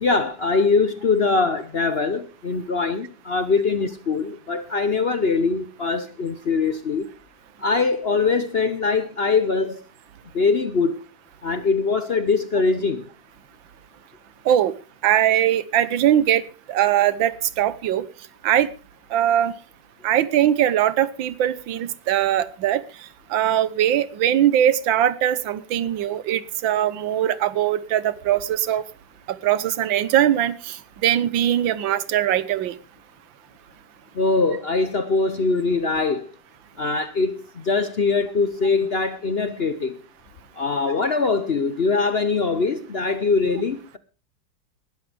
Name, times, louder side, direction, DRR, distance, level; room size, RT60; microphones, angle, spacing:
voice 1, 0.0-7.1 7.6-9.8 10.3-11.0 11.4-13.0 34.1-36.3 36.8-40.0 40.6-44.0, left 4 dB, 50° left, 0.7 m, -22 dB
voice 2, 15.0-16.4 16.7-18.0 18.4-18.7 19.1-19.5 20.0-22.8 23.3-28.8 29.3-32.7, right 11 dB, 85° right, 1.7 m, -21 dB
19.5 x 12.0 x 3.4 m
omnidirectional pair, 2.0 m